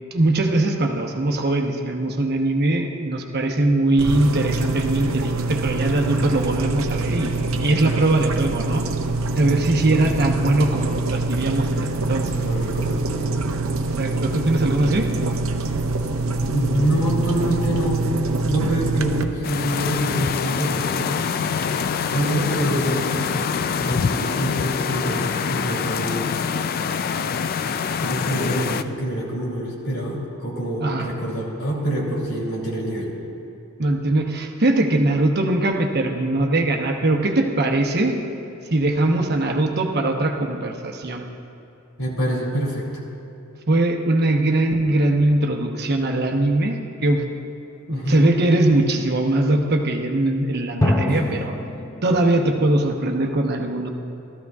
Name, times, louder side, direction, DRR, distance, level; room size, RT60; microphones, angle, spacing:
voice 1, 0.1-8.8 9.4-12.3 14.0-15.1 30.8-31.1 33.8-38.2 38.7-41.2 43.7-47.3 47.9-51.5 52.0-53.9, right 2 dB, 50° right, 2 dB, 0.9 m, -21 dB
sound 1, 4.0-19.2, right 3 dB, 75° right, 0.7 m, -25 dB
voice 2, 9.7-10.1 12.3-13.4 16.5-18.0 18.5-21.2 22.1-23.5 23.8-26.3 28.0-33.1 42.0-42.9 47.9-48.2 51.1-51.2, right 1 dB, 85° left, -3 dB, 2.8 m, -26 dB
sound 2, 19.4-28.8, left 6 dB, 45° left, 0.3 m, -25 dB
sound 3, 44.8-46.1 50.8-52.7, left 1 dB, 15° left, 0.7 m, -27 dB
16.0 x 13.5 x 2.4 m, 2.8 s
head